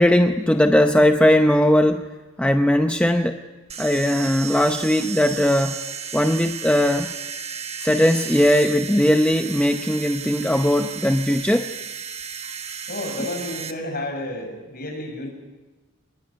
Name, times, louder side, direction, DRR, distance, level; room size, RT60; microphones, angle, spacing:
voice 1, 0.0-2.0 2.4-3.4 3.8-5.8 6.1-7.1 7.8-11.7, left 1 dB, 5° left, 6 dB, 0.7 m, -19 dB
sound 1, 3.7-13.7, right 7 dB, 30° right, 1.4 m, -34 dB
voice 2, 12.9-15.3, left 1 dB, 40° left, 3 dB, 6.9 m, -31 dB
23.5 x 21.5 x 9.9 m, 1.2 s
head